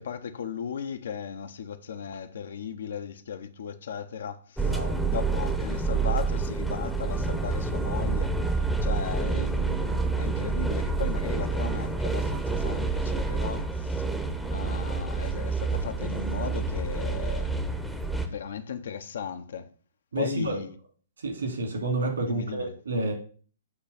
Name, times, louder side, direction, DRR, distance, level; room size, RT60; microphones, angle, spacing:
voice 1, 0.0-4.8 5.1-14.1 14.5-17.5 18.3-19.7 20.2-20.7 22.3-22.8, left 7 dB, 60° left, 0.6 m, -36 dB
sound 1, 4.6-18.3, right 4 dB, ahead, 0.7 m, -28 dB
voice 2, 4.6-5.0 20.1-20.6 21.2-23.1, right 2 dB, 70° right, 2.3 m, -29 dB
7.9 x 3.2 x 5.7 m
figure-of-eight pair, 115°, 0 cm